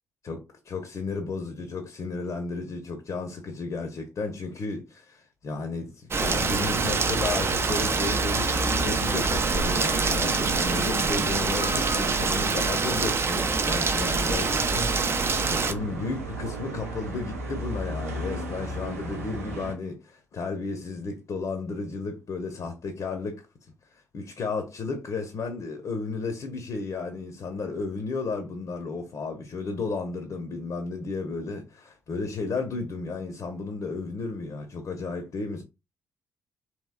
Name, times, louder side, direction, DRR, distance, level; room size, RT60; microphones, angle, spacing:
voice 1, 0.2-23.4 24.1-35.6, left 4 dB, 45° left, 0.6 m, -33 dB
Rain, 6.1-15.7, right 4 dB, 35° right, 0.4 m, -25 dB
sound 1, 6.2-19.7, right 1 dB, 85° right, 0.4 m, -35 dB
3.0 x 2.9 x 2.3 m
figure-of-eight pair, 40°, 8 cm